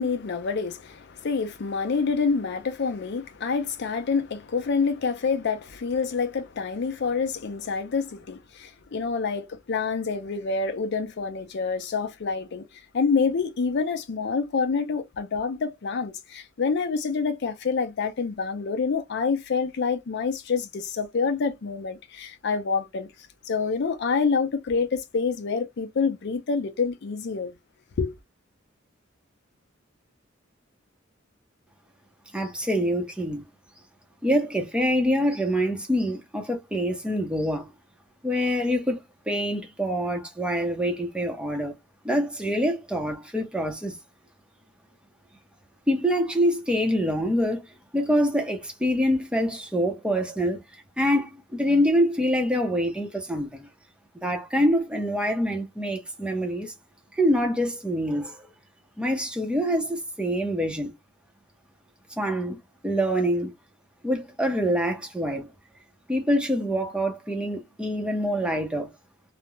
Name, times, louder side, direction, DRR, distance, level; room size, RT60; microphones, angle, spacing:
voice 1, 0.0-12.6 12.9-23.1 23.5-27.5 28.0-28.1, left 5 dB, 60° left, 0.5 m, -27 dB
voice 2, 32.3-33.4 34.2-37.7 38.2-39.0 39.3-41.7 42.0-44.0 45.9-47.7 47.9-50.6 51.0-53.7 54.2-56.7 57.1-58.4 59.0-60.9 62.2-62.6 62.8-63.5 64.0-65.5 66.1-68.9, equal, 5° right, 0.6 m, -25 dB
2.4 x 2.1 x 2.9 m
head